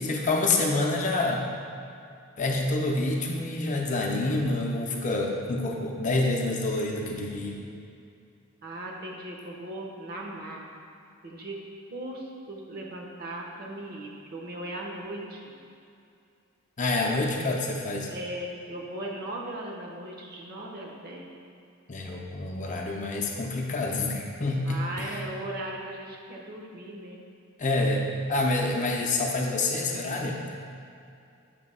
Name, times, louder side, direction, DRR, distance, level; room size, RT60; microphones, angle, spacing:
voice 1, 0.0-1.5 2.4-7.6 16.8-18.1 21.9-25.2 27.6-28.0 28.3-30.4, left 2 dB, 35° left, 0 dB, 0.6 m, -27 dB
voice 2, 8.6-10.7 11.2-11.6 11.9-15.5 18.1-21.3 24.7-27.2, right 1 dB, 45° right, -1 dB, 0.8 m, -38 dB
6.8 x 2.8 x 5.4 m, 2.5 s
head